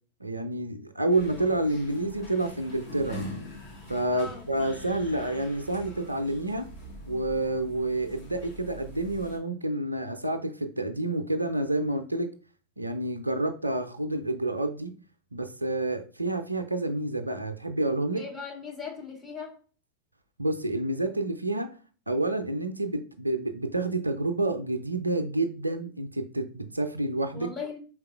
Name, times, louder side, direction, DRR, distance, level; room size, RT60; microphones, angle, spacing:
voice 1, 0.2-3.4 3.9-6.7 7.1-12.3 12.8-14.9 15.3-18.2 20.4-21.7 22.1-27.5, right 2 dB, 85° right, 0.4 m, -29 dB
sound 1, 1.1-9.4, left 1 dB, 50° left, 2.2 m, -44 dB
voice 2, 4.1-4.5 18.2-19.6 27.3-27.8, left 5 dB, 20° left, 1.4 m, -38 dB
4.5 x 3.7 x 2.4 m
figure-of-eight pair, 90°, 0 cm